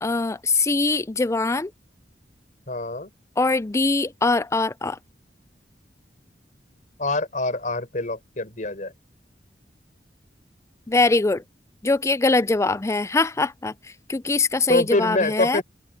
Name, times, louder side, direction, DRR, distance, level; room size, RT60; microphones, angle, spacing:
voice 1, 0.0-1.7 3.4-5.0 10.9-11.4 11.8-13.7 14.1-15.6, left 3 dB, 15° left, 0.4 m, -22 dB
voice 2, 2.7-3.1 7.0-8.9 14.7-15.6, left 2 dB, 45° left, 4.7 m, -25 dB
open air
head